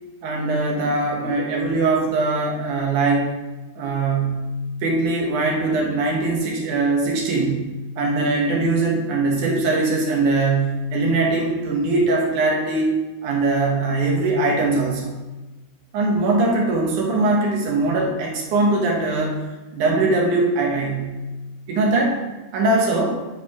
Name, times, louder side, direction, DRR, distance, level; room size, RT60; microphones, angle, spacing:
voice 1, 0.2-3.3 3.8-4.5 4.8-7.7 8.0-15.1 15.9-19.4 19.7-21.2 21.7-22.2 22.5-23.2, right 3 dB, 65° right, -1 dB, 2.2 m, -21 dB
11.0 x 5.3 x 4.7 m, 1.2 s
omnidirectional pair, 4.7 m